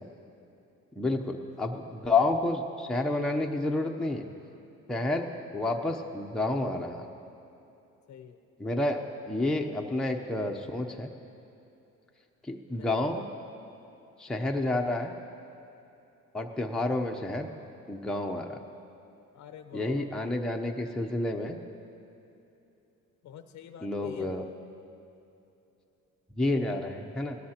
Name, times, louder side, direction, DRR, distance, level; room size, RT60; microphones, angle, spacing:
voice 1, 1.0-4.3 4.9-7.0 8.6-11.1 12.4-13.3 14.2-15.1 16.3-17.5 17.9-18.6 19.7-21.6 23.8-24.4 26.3-27.4, left 2 dB, ahead, 1 dB, 0.7 m, -30 dB
voice 2, 8.1-8.4 12.7-12.9 19.3-20.1 23.2-24.3, left 9 dB, 65° left, 8 dB, 0.6 m, -47 dB
17.5 x 12.5 x 2.9 m, 2.8 s
cardioid pair, 90°, 30 cm